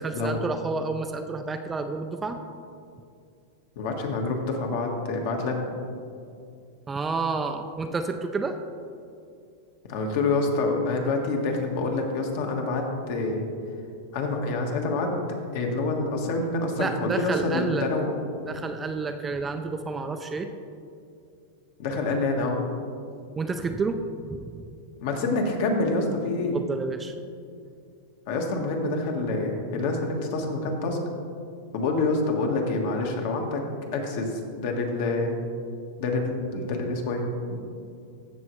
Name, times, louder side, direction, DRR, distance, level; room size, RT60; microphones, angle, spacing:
voice 1, 0.0-2.4 6.9-8.6 16.8-17.9 18.4-20.5 23.4-24.6 26.5-27.1, right 4 dB, 15° right, 6 dB, 0.4 m, -30 dB
voice 2, 3.8-5.6 9.9-13.4 14.1-15.1 15.5-18.1 21.8-22.6 25.0-26.6 28.3-31.0 31.7-33.6 33.9-35.4 36.0-37.6, left 3 dB, 55° left, 2 dB, 1.4 m, -27 dB
14.5 x 6.1 x 3.2 m, 2.4 s
supercardioid pair, 155°, 0 cm